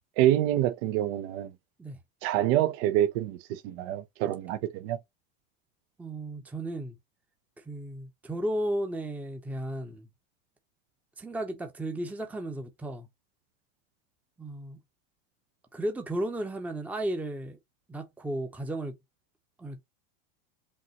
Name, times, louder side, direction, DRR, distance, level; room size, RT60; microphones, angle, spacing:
voice 1, 0.2-1.5 2.2-5.0, right 13 dB, 65° right, 0.6 m, -26 dB
voice 2, 6.0-7.0 7.6-10.1 11.2-13.1 14.4-14.8 15.7-17.6 17.9-19.0 19.6-19.8, right 1 dB, 5° right, 0.6 m, -34 dB
5.3 x 2.9 x 2.8 m
supercardioid pair, 120°, 32 cm